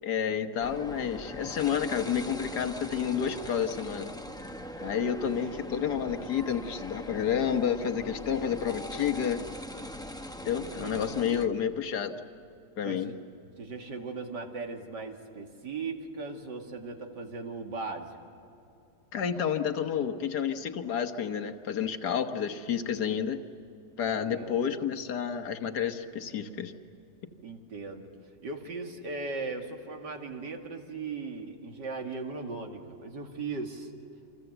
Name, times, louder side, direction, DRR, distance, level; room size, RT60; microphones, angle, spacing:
voice 1, 0.0-4.1 4.8-9.4 10.4-12.2 12.8-13.1 19.1-23.4 24.0-26.7, left 8 dB, 70° left, 8 dB, 1.7 m, -30 dB
sound 1, 0.6-11.5, left 1 dB, 5° left, 0.7 m, -41 dB
voice 2, 5.4-5.7 10.6-11.4 12.8-13.2 13.6-18.2 24.1-24.6 27.4-28.1 28.4-33.9, right 4 dB, 80° right, 3 dB, 2.8 m, -38 dB
28.5 x 26.0 x 8.0 m, 2.7 s
omnidirectional pair, 1.8 m